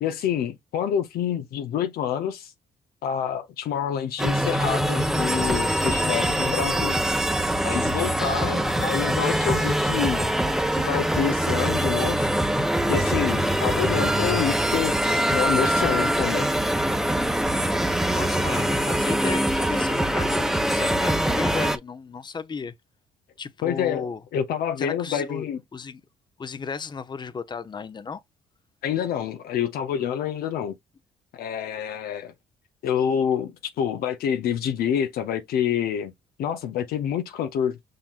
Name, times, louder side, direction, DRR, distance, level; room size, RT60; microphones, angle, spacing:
voice 1, 0.0-2.5 3.0-7.0 7.6-10.3 10.8-12.3 12.9-14.9 15.3-16.5 23.6-25.6 28.8-30.7 31.3-32.3 32.8-36.1 36.4-37.8, left 8 dB, 75° left, 0.6 m, -27 dB
sound 1, 4.2-21.8, right 1 dB, ahead, 0.7 m, -23 dB
voice 2, 18.1-22.7 23.4-24.2 24.8-26.0 26.4-28.2, left 5 dB, 30° left, 0.6 m, -34 dB
5.7 x 3.8 x 2.4 m
supercardioid pair, 70°, 16 cm